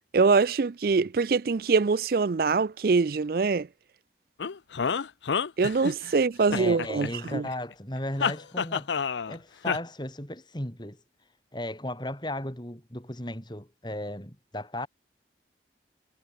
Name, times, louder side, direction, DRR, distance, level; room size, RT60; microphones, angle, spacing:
voice 1, 0.1-3.7 5.6-7.4, right 4 dB, 55° right, 0.4 m, -24 dB
sound 1, 4.4-6.1 6.5-7.5 8.2-9.4 9.7-9.8, left 6 dB, 80° left, 0.6 m, -29 dB
voice 2, 6.5-8.9 9.3-11.0 11.5-14.9, left 1 dB, 25° left, 4.8 m, -35 dB
head